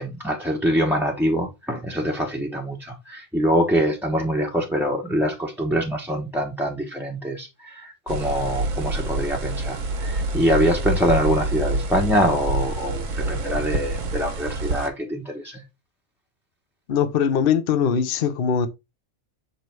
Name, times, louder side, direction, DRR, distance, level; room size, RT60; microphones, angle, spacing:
voice 1, 0.0-15.6, equal, ahead, 0.8 m, -24 dB
sound 1, 8.1-14.9, right 2 dB, 70° right, 1.4 m, -27 dB
voice 2, 16.9-18.7, left 7 dB, 50° left, 0.8 m, -21 dB
6.8 x 3.1 x 4.5 m
omnidirectional pair, 1.4 m